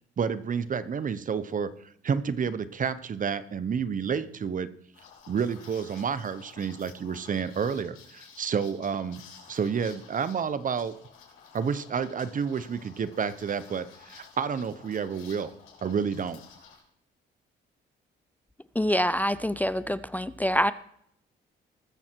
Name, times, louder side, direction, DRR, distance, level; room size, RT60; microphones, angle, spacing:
voice 1, 0.2-4.7 5.3-9.2 9.5-10.9 11.5-15.5 15.8-16.4, right 6 dB, 40° right, 14 dB, 0.9 m, -30 dB
Liquid, 4.9-16.8, left 6 dB, 85° left, 4.4 m, -52 dB
voice 2, 18.8-20.7, equal, 10° left, 15 dB, 0.5 m, -25 dB
20.0 x 7.2 x 4.6 m, 0.69 s
cardioid pair, 90°, 20 cm